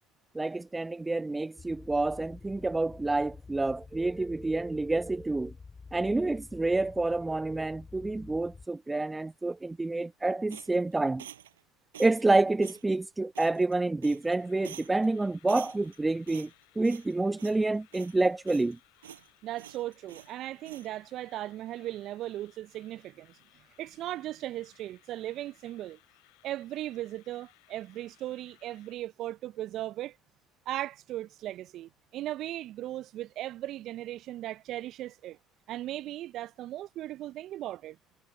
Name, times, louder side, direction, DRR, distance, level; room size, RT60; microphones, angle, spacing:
voice 1, 0.3-5.5 5.9-11.3 12.0-16.5 16.7-18.8, right 2 dB, 15° right, 1.1 m, -28 dB
sound 1, 1.6-8.7, left 4 dB, 25° left, 5.8 m, -49 dB
sound 2, 10.5-11.6 11.9-12.3 12.6-12.8 13.3-13.7 14.0-14.4 14.6-15.1 15.5-16.0 16.3-17.1 17.4-17.6 17.9-18.7 19.0-19.3 19.6-20.3 20.6-20.9, right 11 dB, 85° right, 7.4 m, -48 dB
sound 3, 14.4-29.0, left 40 dB or more, 70° left, 7.7 m, -64 dB
voice 2, 19.4-23.4 23.8-26.0 26.4-30.2 30.7-35.4 35.7-38.0, right 14 dB, 60° right, 0.6 m, -37 dB
hypercardioid pair, 60°, 0 cm